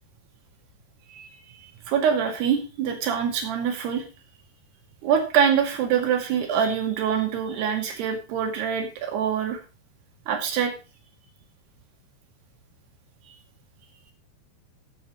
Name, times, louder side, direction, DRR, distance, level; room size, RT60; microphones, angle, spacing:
voice 1, 1.6-4.0 5.0-9.6 10.3-10.7, right 7 dB, 75° right, 4 dB, 4.3 m, -24 dB
15.0 x 8.3 x 3.1 m, 0.31 s
omnidirectional pair, 4.9 m